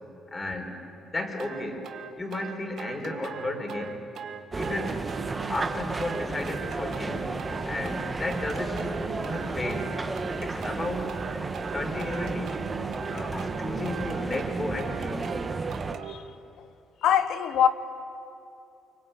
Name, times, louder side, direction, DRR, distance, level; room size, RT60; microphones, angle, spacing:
voice 1, 0.3-0.8 1.1-1.8 2.2-4.0 4.5-5.0 5.5-7.2 7.6-9.9 10.4-11.1 11.7-12.6 13.1-15.3, left 2 dB, 25° left, 4.5 m, -33 dB
sound 1, 1.4-16.2, right 7 dB, 70° right, 1.6 m, -39 dB
sound 2, 4.5-16.0, right 3 dB, 30° right, 1.4 m, -33 dB
sound 3, 7.0-12.1 16.1-16.2, left 3 dB, 65° left, 4.4 m, -47 dB
voice 2, 17.0-17.7, left 9 dB, 80° left, 1.3 m, -22 dB
24.5 x 23.5 x 9.2 m
cardioid pair, 90°, 0 cm